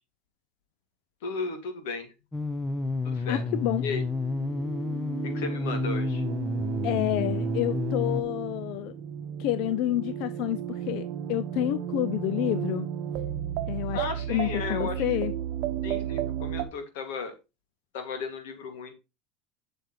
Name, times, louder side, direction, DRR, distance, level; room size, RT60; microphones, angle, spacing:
voice 1, 1.2-2.1 3.0-3.4 3.8-4.0 5.3-6.2 13.9-15.0 15.8-17.3 17.9-18.9, left 4 dB, 80° left, 2.1 m, -35 dB
sound 1, 2.3-8.2, left 3 dB, 10° left, 0.6 m, -30 dB
voice 2, 3.3-3.9 6.8-9.0 9.4-12.9 13.7-15.3, left 15 dB, 55° left, 0.3 m, -29 dB
sound 2, 3.4-16.6, right 11 dB, 50° right, 0.9 m, -34 dB
7.9 x 6.8 x 3.1 m
supercardioid pair, 150°, 0 cm